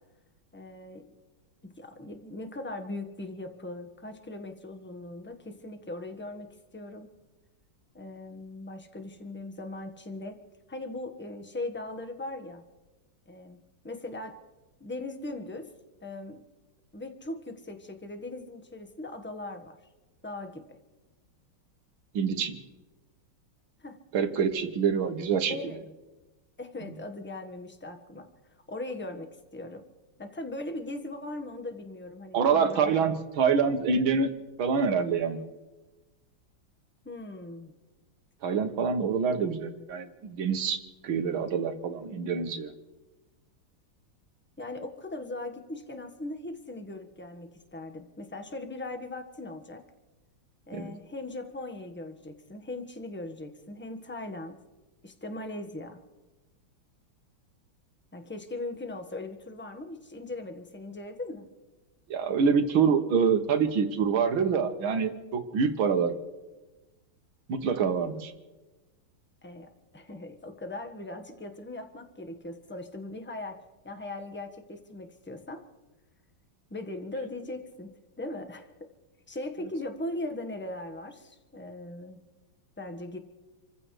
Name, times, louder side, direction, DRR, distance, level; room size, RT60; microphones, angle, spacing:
voice 1, 0.5-1.1 1.8-7.1 7.9-10.4 10.7-12.6 13.3-14.4 14.8-15.7 16.0-16.4 16.9-19.8 20.2-20.8 23.8-24.0 25.5-25.9 26.6-28.2 28.7-29.8 30.2-32.9 37.0-37.7 44.6-49.8 50.7-54.5 55.0-56.0 58.1-61.5 69.4-75.6 76.7-78.7 79.3-82.2 82.8-83.2, left 2 dB, 5° left, 5 dB, 1.0 m, -39 dB
voice 2, 22.1-22.6 24.1-25.6 32.3-34.3 34.6-35.4 38.4-42.7 50.7-50.9 62.1-66.1 67.5-68.3, right 6 dB, 80° right, 7 dB, 2.0 m, -26 dB
29.0 x 15.0 x 3.3 m, 1.1 s
omnidirectional pair, 2.2 m